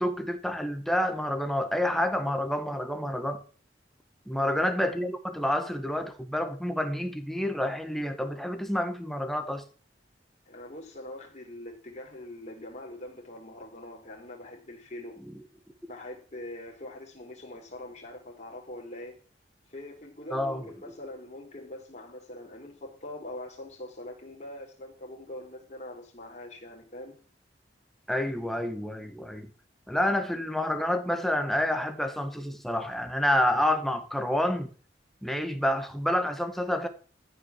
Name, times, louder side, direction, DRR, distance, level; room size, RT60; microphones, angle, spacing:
voice 1, 0.0-3.4 4.3-9.6 15.3-15.4 20.3-20.7 28.1-29.5 29.9-34.7 35.2-36.9, left 1 dB, ahead, 1.7 m, -28 dB
voice 2, 4.4-4.7 10.5-15.2 15.9-19.2 19.7-27.2, left 1 dB, 40° left, 4.6 m, -43 dB
14.5 x 6.3 x 7.5 m
head